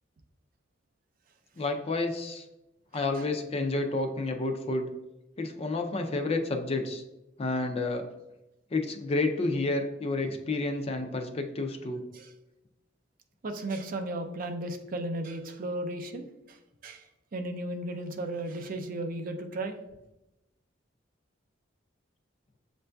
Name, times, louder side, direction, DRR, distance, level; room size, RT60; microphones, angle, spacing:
voice 1, 1.6-2.4 2.9-4.9 5.4-7.0 7.4-8.0 8.7-12.0, left 2 dB, 30° left, 5 dB, 0.4 m, -30 dB
voice 2, 13.4-19.8, right 1 dB, 45° right, 6 dB, 0.4 m, -35 dB
7.6 x 2.6 x 2.2 m, 0.94 s
head